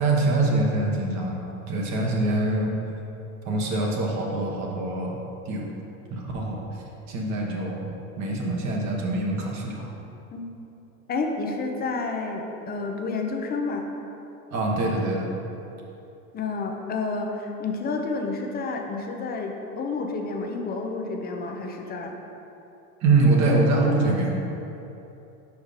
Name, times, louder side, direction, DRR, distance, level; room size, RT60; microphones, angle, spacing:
voice 1, 0.0-2.7 3.4-5.2 5.4-5.7 6.1-7.9 8.2-9.9 14.5-15.3 23.0-24.3, right 2 dB, 40° right, -1 dB, 1.2 m, -24 dB
voice 2, 11.1-13.8 16.3-22.1, left 3 dB, 20° left, 2 dB, 0.6 m, -30 dB
5.2 x 4.8 x 5.0 m, 2.9 s
supercardioid pair, 125°, 42 cm